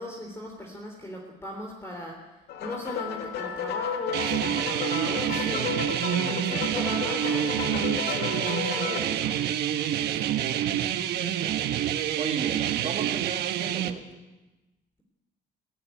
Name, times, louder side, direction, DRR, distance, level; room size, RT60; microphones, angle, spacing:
voice 1, 0.0-2.2 2.6-5.8 6.3-9.3, left 1 dB, 15° left, 0 dB, 3.4 m, -37 dB
sound 1, 2.5-9.0, left 7 dB, 80° left, 2.3 m, -33 dB
sound 2, 4.1-13.9, right 11 dB, 75° right, 1.3 m, -27 dB
voice 2, 12.1-14.0, right 6 dB, 40° right, 4 dB, 2.8 m, -35 dB
17.5 x 17.0 x 9.3 m, 1.1 s
cardioid pair, 110°, 17 cm